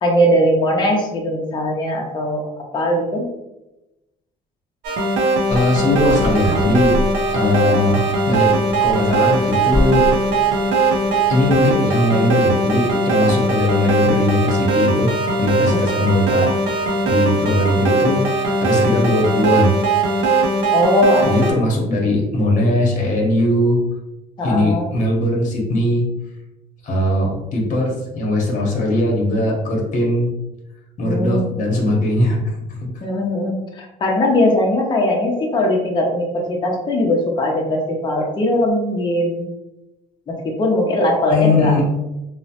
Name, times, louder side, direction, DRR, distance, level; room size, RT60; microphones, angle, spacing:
voice 1, 0.0-2.4 2.7-3.2 15.7-15.8 20.7-21.7 24.4-24.9 31.1-31.4 33.0-39.4 40.3-41.7, left 1 dB, 25° left, -1 dB, 0.6 m, -19 dB
sound 1, 4.8-21.5, right 2 dB, 85° right, 0.5 m, -19 dB
voice 2, 5.5-7.0 7.3-8.5 8.8-10.1 11.3-15.1 15.4-19.8 21.2-23.8 24.4-26.1 26.8-30.3 31.0-32.4 32.8-32.9 41.3-41.8, left 1 dB, 45° left, -1 dB, 0.9 m, -19 dB
sound 2, 5.5-11.8, equal, 35° right, 1.1 m, -28 dB
2.8 x 2.0 x 2.8 m, 0.95 s
cardioid pair, 110°, 17 cm